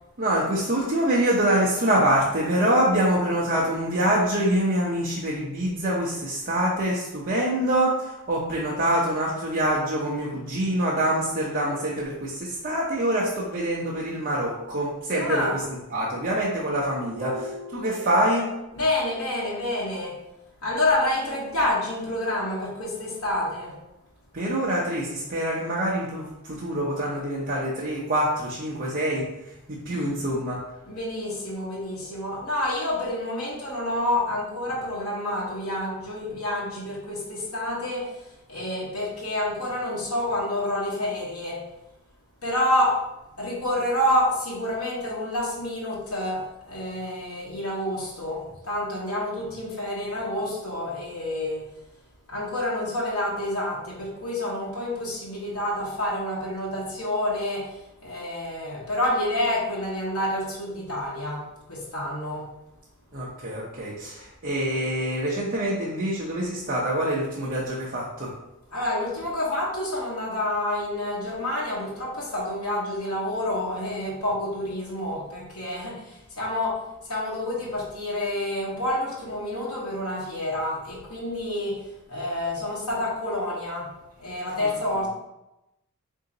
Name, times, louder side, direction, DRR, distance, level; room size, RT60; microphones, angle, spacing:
voice 1, 0.2-18.5 24.3-30.6 63.1-68.3 84.6-85.0, right 1 dB, 40° right, -6 dB, 0.7 m, -25 dB
voice 2, 15.1-15.7 17.1-20.2 20.6-23.8 29.9-30.4 30.8-41.7 42.4-43.1 43.4-51.7 52.3-62.5 68.7-85.1, left 1 dB, 75° left, -5 dB, 1.0 m, -28 dB
3.7 x 2.7 x 3.9 m, 0.92 s
head